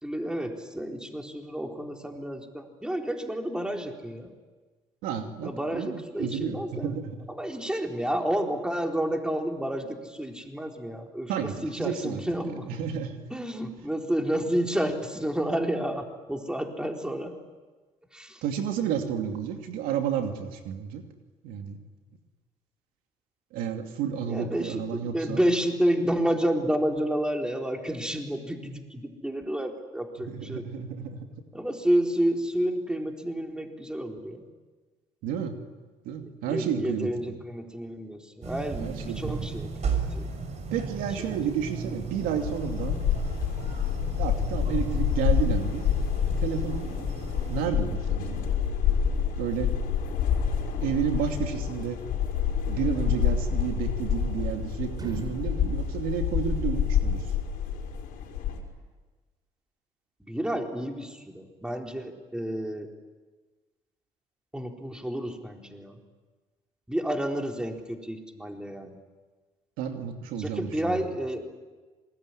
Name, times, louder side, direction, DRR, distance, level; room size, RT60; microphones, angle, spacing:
voice 1, 0.0-4.3 5.4-6.9 7.3-11.3 11.6-12.7 13.3-17.3 18.1-18.4 24.3-30.7 31.5-34.4 36.5-40.3 41.2-41.4 41.8-42.0 60.2-62.9 64.5-65.9 66.9-68.9 70.4-71.4, right 1 dB, 5° right, 3 dB, 4.3 m, -30 dB
voice 2, 5.0-7.2 11.3-12.2 12.5-13.1 18.4-21.0 21.4-21.8 23.5-25.4 30.2-31.3 35.2-35.6 36.0-37.3 38.8-39.5 40.7-43.0 44.2-45.9 46.4-46.8 47.5-48.5 49.4-49.7 50.8-52.0 52.7-57.3 69.8-71.0, right 8 dB, 80° right, 5 dB, 2.7 m, -31 dB
sound 1, 38.4-47.7, right 5 dB, 50° right, 5.9 m, -35 dB
sound 2, 42.4-58.6, left 8 dB, 75° left, 5.3 m, -28 dB
sound 3, 54.2-54.6 54.9-57.0, right 2 dB, 30° right, 3.4 m, -44 dB
27.0 x 20.5 x 10.0 m, 1.3 s
supercardioid pair, 75°, 14 cm